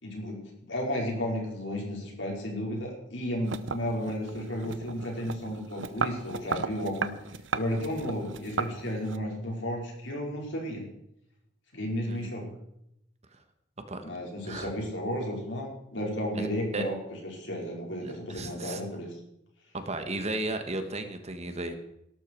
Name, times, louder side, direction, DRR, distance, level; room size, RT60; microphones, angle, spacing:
voice 1, 0.0-7.1 7.5-10.9 11.7-12.5 14.0-19.1, equal, 70° left, -1 dB, 5.1 m, -33 dB
sound 1, 3.4-9.2, right 5 dB, 75° right, 0.8 m, -35 dB
voice 2, 18.0-18.8 19.7-21.7, right 2 dB, 35° right, 7 dB, 1.6 m, -34 dB
18.0 x 12.5 x 4.7 m, 0.79 s
head